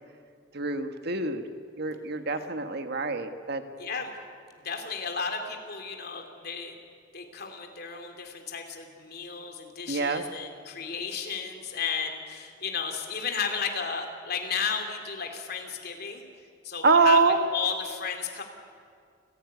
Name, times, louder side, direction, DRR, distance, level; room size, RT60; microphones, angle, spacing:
voice 1, 0.5-1.4 1.8-3.6 9.9-10.2 16.8-17.4, right 4 dB, 60° right, 7 dB, 1.6 m, -24 dB
voice 2, 3.8-4.1 4.6-6.7 7.1-16.3 16.6-18.4, left 6 dB, 55° left, 4 dB, 3.2 m, -33 dB
28.5 x 16.0 x 9.6 m, 2.2 s
head